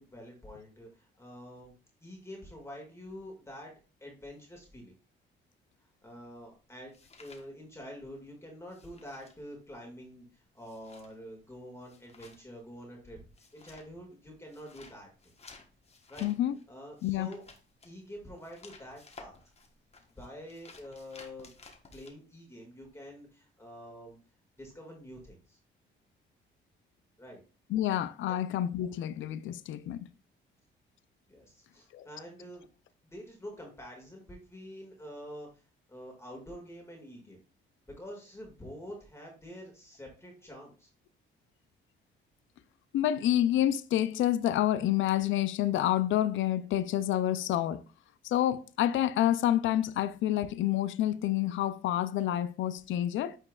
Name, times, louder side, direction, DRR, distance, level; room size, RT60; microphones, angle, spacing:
voice 1, 0.0-1.7 2.0-3.7 4.0-4.9 6.0-6.9 7.2-13.2 13.5-15.1 15.4-15.5 16.1-16.3 16.7-17.4 17.8-19.4 20.1-21.5 21.9-24.2 24.6-25.6 27.2-27.4 28.3-28.5 31.3-32.7 33.1-35.6 35.9-37.4 37.9-40.9, equal, 15° left, 2.0 m, -47 dB
sound 1, 6.0-8.2 8.5-22.1, left 3 dB, 30° left, 1.2 m, -56 dB
voice 2, 16.2-16.6 17.0-17.3 27.7-30.0 31.9-32.1 42.9-47.8 48.2-53.4, left 12 dB, 80° left, 0.5 m, -28 dB
8.7 x 4.5 x 2.4 m
cardioid pair, 90°, 20 cm